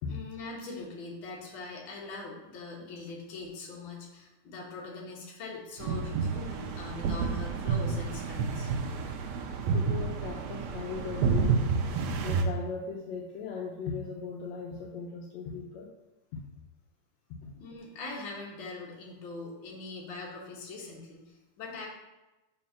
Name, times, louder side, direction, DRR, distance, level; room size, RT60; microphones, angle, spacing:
voice 1, 0.1-8.7 17.5-21.9, left 3 dB, 50° left, -3 dB, 1.6 m, -42 dB
sound 1, 5.8-12.4, right 5 dB, 80° right, 1.6 m, -30 dB
voice 2, 9.7-11.7 12.2-15.9 16.3-16.4 17.3-17.5, left 5 dB, 80° left, -2 dB, 1.5 m, -38 dB
5.4 x 5.0 x 5.7 m, 1.0 s
omnidirectional pair, 4.0 m